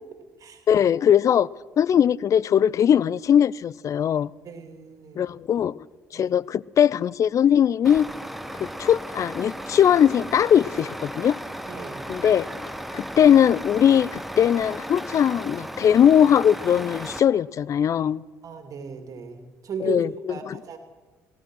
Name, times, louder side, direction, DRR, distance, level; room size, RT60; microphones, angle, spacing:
voice 1, 0.7-1.5 1.8-4.3 5.2-5.9 6.1-8.1 8.6-11.4 12.1-18.2 19.8-20.6, left 9 dB, 50° left, 0.4 m, -20 dB
voice 2, 4.4-5.3 6.1-6.3 11.7-12.1 18.4-20.0 20.3-20.8, right 6 dB, 55° right, 2.4 m, -36 dB
Truck, 7.8-17.2, equal, ahead, 1.2 m, -35 dB
18.0 x 12.5 x 6.3 m
hypercardioid pair, 60°, 7 cm